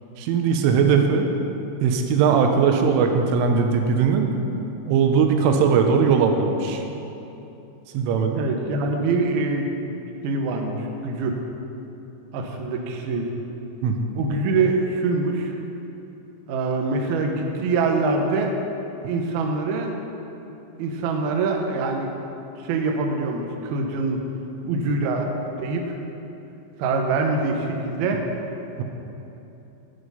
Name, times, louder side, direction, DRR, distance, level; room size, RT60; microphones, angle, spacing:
voice 1, 0.2-1.3 1.8-4.3 4.9-6.8 7.9-8.4 13.8-14.1 28.8-28.9, right 6 dB, 90° right, 4 dB, 3.4 m, -19 dB
voice 2, 8.3-9.8 10.2-11.4 12.3-13.3 14.2-15.5 16.5-18.5 19.0-19.9 20.8-22.1 22.6-24.2 24.6-25.3 25.6-26.0 26.8-28.2 28.8-28.9, right 3 dB, 70° right, 2 dB, 2.5 m, -24 dB
11.5 x 9.7 x 5.5 m, 3.0 s
omnidirectional pair, 5.5 m